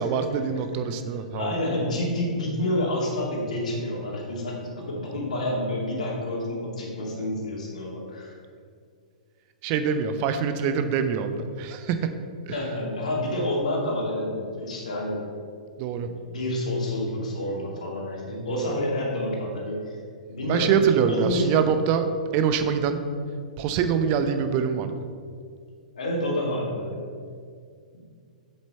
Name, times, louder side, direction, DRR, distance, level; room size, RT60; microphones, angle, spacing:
voice 1, 0.0-1.5 7.1-7.3 9.6-12.1 12.4-12.5 15.8-16.1 18.5-18.8 20.5-23.0 23.6-25.0, right 7 dB, 35° right, 9 dB, 0.7 m, -25 dB
voice 2, 1.3-8.3 12.5-15.2 16.0-20.0 20.3-20.7 21.1-21.6 25.9-27.0, left 1 dB, 65° left, -2 dB, 2.3 m, -29 dB
7.8 x 7.4 x 4.3 m, 2.2 s
figure-of-eight pair, 110°, 4 cm